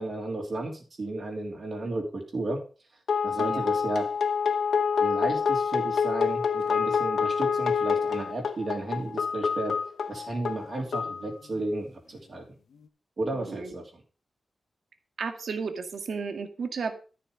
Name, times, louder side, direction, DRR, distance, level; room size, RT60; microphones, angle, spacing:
voice 1, 0.0-2.6 3.2-4.1 5.0-9.7 10.1-12.4 13.2-13.9, right 2 dB, 40° right, 1 dB, 3.0 m, -33 dB
sound 1, 3.1-11.6, left 6 dB, 80° left, 1.0 m, -27 dB
voice 2, 13.3-13.7 15.2-17.0, right 5 dB, 65° right, 7 dB, 1.7 m, -33 dB
13.0 x 7.2 x 5.0 m, 0.36 s
wide cardioid pair, 175°, 0 cm